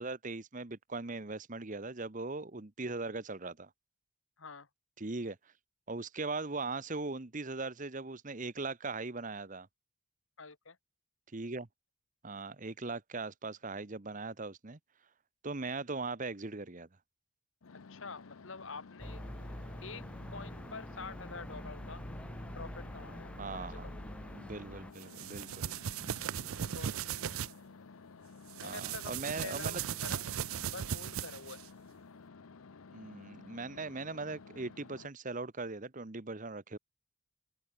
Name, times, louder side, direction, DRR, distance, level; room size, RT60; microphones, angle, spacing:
voice 1, 0.0-3.7 5.0-5.4 5.9-9.7 11.3-11.7 12.2-14.8 15.4-16.9 23.4-23.8 24.3-25.8 28.6-29.8 32.9-36.8, right 3 dB, 35° right, 1.0 m, -39 dB
voice 2, 4.4-4.7 10.4-10.8 17.9-19.2 19.8-22.0 22.5-23.9 26.7-27.4 28.6-29.1 29.4-30.2 30.6-31.6, left 4 dB, 65° left, 1.7 m, -47 dB
sound 1, 17.6-35.1, left 4 dB, 85° left, 0.7 m, -54 dB
sound 2, 19.0-24.9, equal, 5° left, 1.0 m, -45 dB
sound 3, 25.0-27.5 28.5-31.7, right 9 dB, 80° right, 0.5 m, -38 dB
open air
head